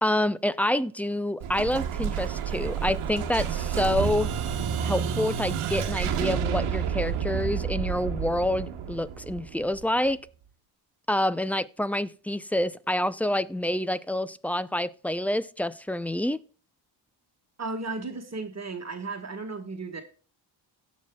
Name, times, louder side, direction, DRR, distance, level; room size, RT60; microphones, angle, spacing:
voice 1, 0.0-4.3 4.8-10.2 11.1-16.4, left 1 dB, 5° left, 0.5 m, -27 dB
Explosion, 1.4-10.1, right 8 dB, 90° right, 1.3 m, -30 dB
voice 2, 17.6-20.0, right 3 dB, 30° right, 1.7 m, -34 dB
17.0 x 6.5 x 2.3 m
supercardioid pair, 60°, 49 cm